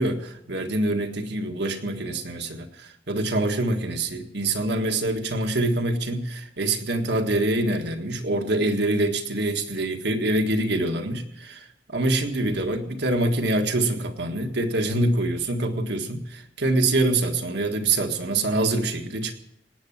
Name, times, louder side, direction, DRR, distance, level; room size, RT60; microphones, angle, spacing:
voice 1, 0.0-19.3, right 2 dB, 65° right, 5 dB, 1.7 m, -25 dB
18.5 x 9.1 x 7.3 m, 0.78 s
head